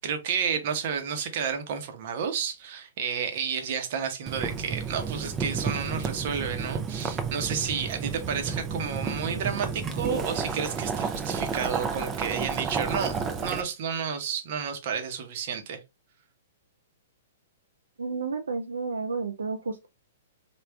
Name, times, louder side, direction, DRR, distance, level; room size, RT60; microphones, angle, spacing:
voice 1, 0.0-15.8, right 7 dB, 55° right, 0.8 m, -31 dB
Boiling, 4.3-13.6, right 5 dB, 25° right, 0.5 m, -31 dB
voice 2, 18.0-19.9, right 4 dB, 85° right, 0.4 m, -31 dB
3.5 x 2.4 x 3.3 m
hypercardioid pair, 120°, 0 cm